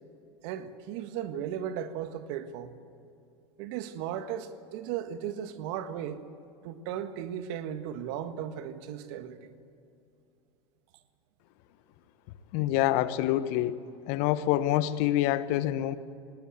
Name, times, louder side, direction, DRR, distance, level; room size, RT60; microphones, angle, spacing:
voice 1, 0.4-2.8 3.6-6.2 6.6-9.5, right 9 dB, 60° right, 10 dB, 1.6 m, -36 dB
voice 2, 12.5-13.8 14.1-15.9, left 13 dB, 60° left, 14 dB, 1.1 m, -26 dB
20.0 x 18.0 x 8.1 m, 2.6 s
hypercardioid pair, 95°, 15 cm